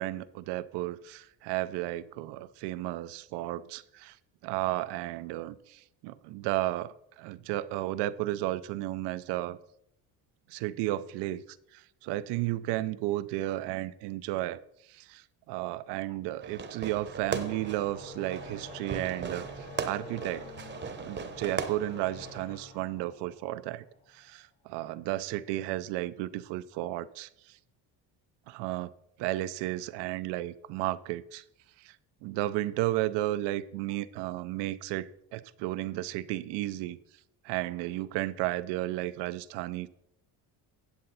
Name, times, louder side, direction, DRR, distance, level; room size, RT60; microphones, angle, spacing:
voice 1, 0.0-4.2 4.4-9.6 10.5-11.4 11.7-14.6 14.9-20.5 21.0-27.3 28.5-28.9 29.2-31.4 31.8-32.0 32.2-37.0 37.4-39.9, right 16 dB, 85° right, 0.6 m, -33 dB
Fireworks, 16.4-22.4, right 6 dB, 25° right, 0.8 m, -38 dB
sound 1, 16.9-24.2, left 3 dB, 85° left, 2.6 m, -48 dB
9.4 x 7.7 x 4.0 m
cardioid pair, 120°, 40 cm